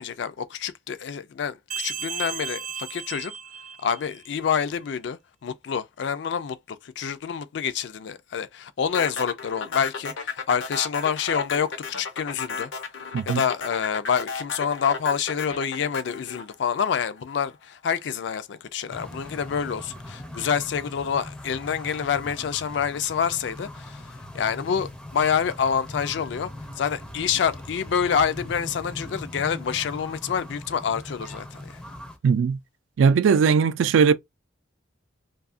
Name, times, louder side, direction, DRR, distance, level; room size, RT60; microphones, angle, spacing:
voice 1, 0.0-3.3 3.8-12.7 13.3-24.1 24.3-26.5 26.8-31.8, left 7 dB, 65° left, 0.4 m, -27 dB
sound 1, 1.7-4.3, right 7 dB, 45° right, 0.6 m, -34 dB
sound 2, 8.9-17.3, left 4 dB, 85° left, 0.7 m, -33 dB
sound 3, 18.9-32.2, left 1 dB, 5° left, 0.4 m, -40 dB
voice 2, 32.2-32.6 33.0-34.1, right 6 dB, 90° right, 0.3 m, -19 dB
2.7 x 2.3 x 2.4 m
head